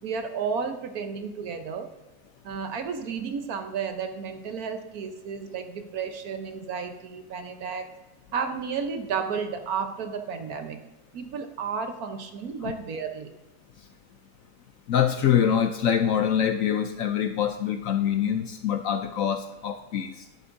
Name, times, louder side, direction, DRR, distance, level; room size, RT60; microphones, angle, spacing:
voice 1, 0.0-1.9 2.4-7.9 8.3-10.8 11.1-13.3, right 6 dB, 65° right, 6 dB, 1.3 m, -32 dB
voice 2, 14.9-20.3, left 9 dB, 65° left, 7 dB, 0.8 m, -25 dB
12.5 x 11.0 x 2.6 m, 1.1 s
omnidirectional pair, 1.8 m